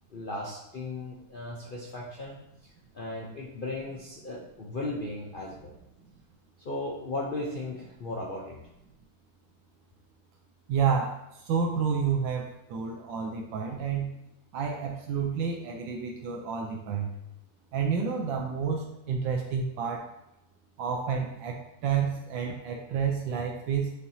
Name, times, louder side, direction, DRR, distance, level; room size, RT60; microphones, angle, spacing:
voice 1, 0.1-5.7 6.6-8.6, left 2 dB, 80° left, -2 dB, 0.4 m, -36 dB
voice 2, 10.7-14.1 14.5-17.1 17.7-20.1 20.8-23.9, right 6 dB, 90° right, 1 dB, 1.4 m, -30 dB
8.4 x 4.3 x 2.7 m, 0.86 s
omnidirectional pair, 2.0 m